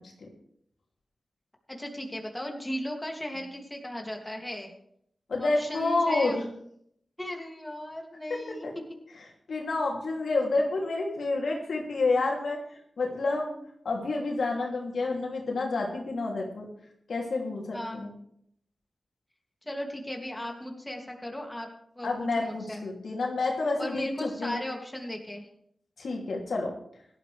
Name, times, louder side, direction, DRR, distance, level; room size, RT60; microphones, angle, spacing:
voice 1, 1.7-4.7 5.4-6.4 7.2-8.7 17.7-18.0 19.7-21.7 22.0-22.8 23.8-25.5, left 1 dB, 15° left, 1 dB, 2.7 m, -36 dB
voice 2, 5.3-6.5 8.3-8.7 9.5-12.6 13.0-13.6 13.8-16.7 17.1-18.1 22.0-24.6 26.0-26.7, left 3 dB, 85° left, -1 dB, 3.1 m, -29 dB
17.0 x 12.0 x 3.5 m, 0.71 s
cardioid pair, 65°, 0 cm